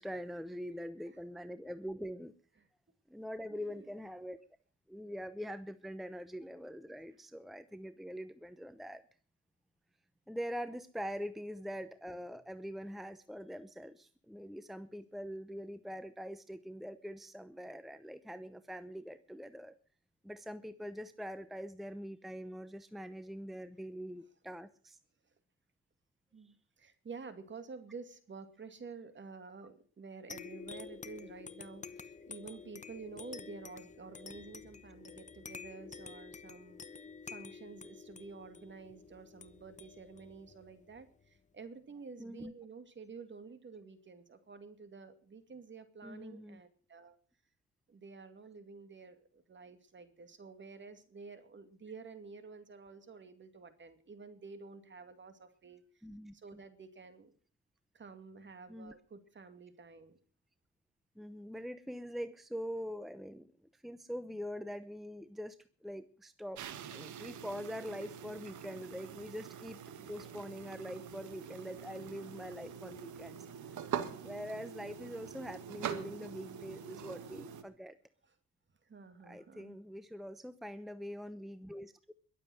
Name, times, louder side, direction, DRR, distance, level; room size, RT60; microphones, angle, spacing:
voice 1, 0.0-2.3 3.1-4.4 4.9-9.0 10.3-19.8 20.2-25.0 26.4-26.5 42.2-42.5 46.0-46.6 56.0-56.6 58.7-58.9 61.2-66.6 66.9-69.8 70.1-73.5 74.2-78.0 79.2-82.1, equal, ahead, 12 dB, 0.8 m, -44 dB
voice 2, 3.5-3.9 26.3-36.8 37.3-47.2 47.9-55.8 56.3-57.3 57.9-60.2 78.9-79.8, right 4 dB, 40° right, 9 dB, 2.5 m, -50 dB
sound 1, 30.3-41.4, left 5 dB, 25° left, 1.0 m, -50 dB
sound 2, 66.5-77.6, right 8 dB, 75° right, 1.7 m, -44 dB
22.0 x 7.6 x 6.4 m, 0.43 s
cardioid pair, 90°, 30 cm